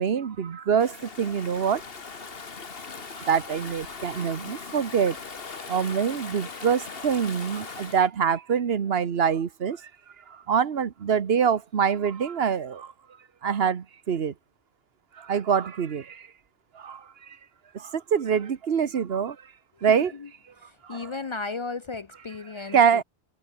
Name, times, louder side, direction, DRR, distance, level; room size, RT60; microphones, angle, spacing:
voice 1, 0.0-1.8 3.1-5.2 5.7-9.9 10.3-12.9 13.4-14.3 15.1-16.3 16.7-17.4 17.7-19.5 19.8-20.1 20.8-21.1 22.6-23.0, right 7 dB, 70° right, 1.3 m, -25 dB
Stream / Ocean, 0.8-8.1, left 5 dB, 65° left, 1.8 m, -40 dB
voice 2, 20.6-23.0, left 4 dB, 45° left, 0.4 m, -35 dB
omnidirectional pair, 1.1 m